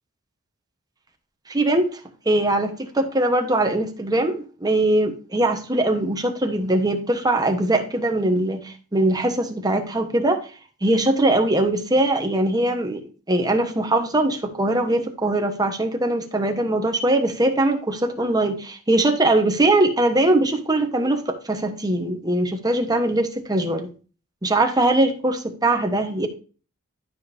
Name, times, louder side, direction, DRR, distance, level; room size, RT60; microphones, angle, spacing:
voice 1, 1.5-10.4 10.8-13.0 13.3-23.9 24.4-26.3, right 1 dB, 20° right, 5 dB, 1.1 m, -21 dB
12.0 x 5.2 x 2.7 m, 0.36 s
head